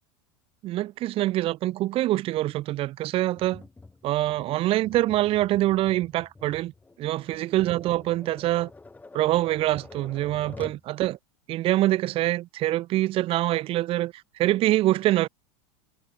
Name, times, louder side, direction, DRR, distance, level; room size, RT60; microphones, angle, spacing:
voice 1, 0.6-3.6 4.0-6.7 7.0-8.7 9.1-11.2 11.5-15.3, right 15 dB, 35° right, 0.5 m, -25 dB
Tap, 3.4-10.9, left 3 dB, 10° left, 2.0 m, -47 dB
supercardioid pair, 120°, 17 cm